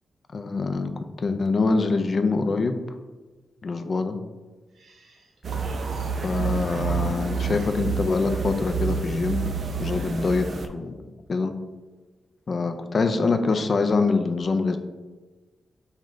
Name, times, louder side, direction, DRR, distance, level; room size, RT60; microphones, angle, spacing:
voice 1, 0.3-0.9 1.2-2.8 3.6-4.2 6.2-9.5 9.8-11.5 12.5-14.8, left 3 dB, 50° left, 8 dB, 0.3 m, -24 dB
sound 1, 4.8-8.1, right 2 dB, 80° right, 0.7 m, -44 dB
sound 2, 5.4-10.7, right 5 dB, 60° right, 0.3 m, -29 dB
4.7 x 2.1 x 3.7 m, 1.3 s
cardioid pair, 85°, 0 cm